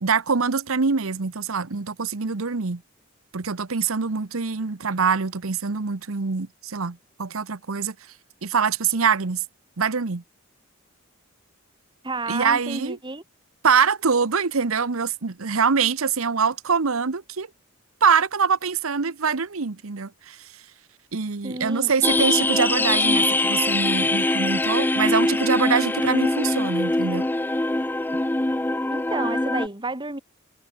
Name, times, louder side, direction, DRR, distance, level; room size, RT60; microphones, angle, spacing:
voice 1, 0.0-2.8 3.3-7.9 8.4-9.4 9.8-10.2 12.3-13.0 13.6-17.5 18.0-20.6 21.1-27.3, right 5 dB, 80° right, 1.0 m, -24 dB
voice 2, 12.0-13.2 21.4-21.9 28.9-30.2, right 2 dB, 20° right, 2.9 m, -31 dB
sound 1, 22.0-29.7, left 2 dB, 10° left, 0.4 m, -23 dB
head